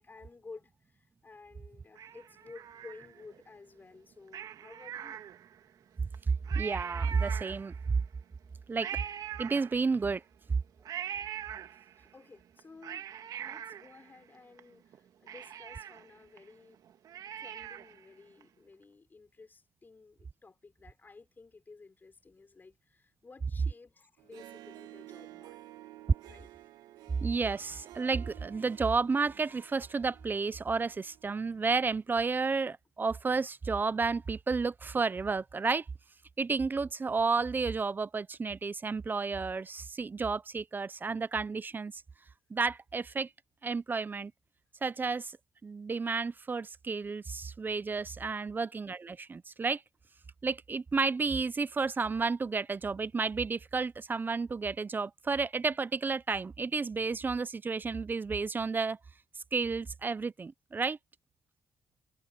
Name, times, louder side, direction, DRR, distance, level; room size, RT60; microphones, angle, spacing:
voice 1, 0.0-5.3 11.6-13.1 13.4-16.8 17.4-25.6 26.2-26.5 48.5-48.7, left 4 dB, 30° left, 4.3 m, -54 dB
Cat, 2.0-3.4 4.3-5.7 6.1-6.2 6.4-8.0 8.8-10.2 10.8-12.1 12.6-14.6 14.9-15.0 15.3-18.1 18.4-18.5, right 9 dB, 65° right, 2.0 m, -42 dB
voice 2, 6.3-7.7 8.7-9.0 9.4-10.2 27.2-35.8 36.4-41.9 42.5-43.3 43.6-44.3 44.8-45.3 45.6-49.8 50.4-59.0 59.5-61.0, right 4 dB, 30° right, 0.7 m, -31 dB
Harp, 24.2-31.6, right 15 dB, 85° right, 3.0 m, -52 dB
supercardioid pair, 75°, 7 cm